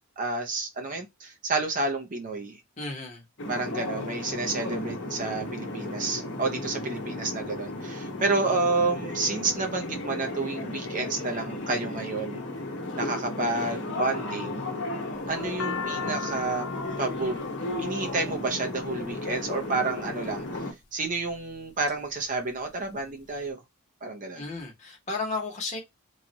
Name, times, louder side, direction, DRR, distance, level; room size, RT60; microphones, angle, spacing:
voice 1, 0.2-2.6 3.5-12.4 13.0-14.6 15.3-16.7 17.0-17.4 17.8-23.6 24.0-24.4, right 3 dB, 40° right, 0.7 m, -30 dB
voice 2, 2.8-3.2 24.4-25.8, left 3 dB, 35° left, 1.1 m, -33 dB
sound 1, 3.4-20.7, left 2 dB, 55° left, 1.0 m, -34 dB
sound 2, 15.2-19.4 20.2-20.7 21.3-21.9 22.3-22.4 22.5-23.4, left 6 dB, 80° left, 0.5 m, -38 dB
3.2 x 2.4 x 4.0 m
head